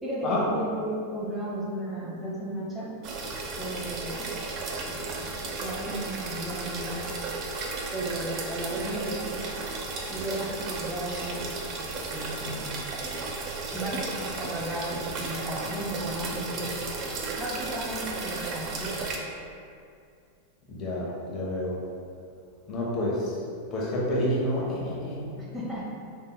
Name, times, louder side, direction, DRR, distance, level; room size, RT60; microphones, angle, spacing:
voice 1, 0.0-2.9 3.6-4.3 4.8-5.3 5.6-7.0 7.9-9.4 10.1-11.4 11.7-12.6 13.7-16.8 17.3-18.9 25.4-26.0, right 1 dB, 10° right, -7 dB, 0.9 m, -34 dB
sound 1, 3.0-19.2, right 3 dB, 35° right, 0.4 m, -34 dB
voice 2, 20.7-21.8 22.7-23.3 23.7-25.2, left 1 dB, 30° left, -6 dB, 0.7 m, -28 dB
5.0 x 2.7 x 2.2 m, 2.4 s
figure-of-eight pair, 90°, 0 cm